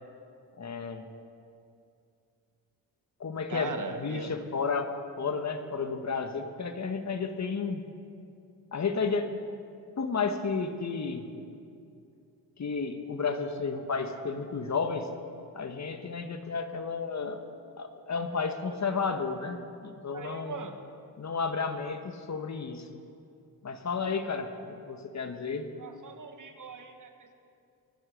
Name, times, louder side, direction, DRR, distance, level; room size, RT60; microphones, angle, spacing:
voice 1, 0.6-1.0 3.2-3.7 4.0-7.8 8.7-9.3 10.0-11.2 12.6-15.1 15.5-17.4 17.8-20.6 21.2-22.9 23.6-25.7, left 5 dB, 40° left, 8 dB, 1.3 m, -32 dB
voice 2, 3.5-4.3 14.5-14.6 20.1-20.8 25.8-27.3, right 5 dB, 45° right, 7 dB, 1.6 m, -40 dB
23.0 x 8.0 x 6.3 m, 2.5 s
supercardioid pair, 55°, 43 cm